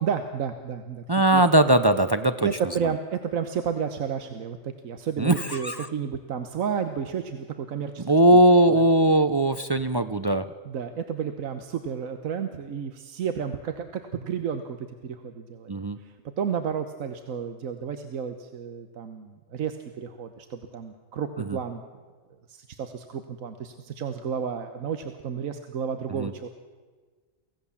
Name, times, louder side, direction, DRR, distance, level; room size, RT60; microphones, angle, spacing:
voice 1, 0.0-1.0 1.3-1.4 2.4-8.1 8.7-8.8 10.6-15.7 16.0-21.8 22.5-26.5, right 7 dB, 85° right, 8 dB, 1.4 m, -31 dB
voice 2, 1.1-2.5 5.2-5.9 8.0-10.4 15.7-16.0 21.5-21.6 26.1-26.3, right 1 dB, 40° right, 10 dB, 0.3 m, -20 dB
24.5 x 16.5 x 7.1 m, 1.4 s
omnidirectional pair, 1.4 m